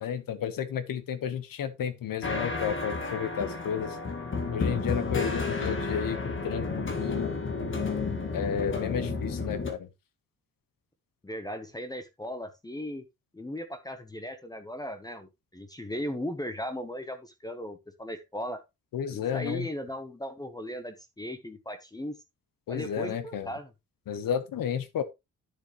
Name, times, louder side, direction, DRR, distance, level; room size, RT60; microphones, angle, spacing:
voice 1, 0.0-4.0 4.5-7.3 8.3-9.9 18.9-19.7 22.7-23.5 24.1-25.0, left 8 dB, 80° left, 1.3 m, -32 dB
sound 1, 2.2-9.7, left 4 dB, 35° left, 1.7 m, -31 dB
voice 2, 11.2-13.0 13.3-18.6 19.1-22.2 22.7-23.7, equal, 10° left, 0.9 m, -37 dB
10.0 x 7.0 x 3.1 m
wide cardioid pair, 160°, 33 cm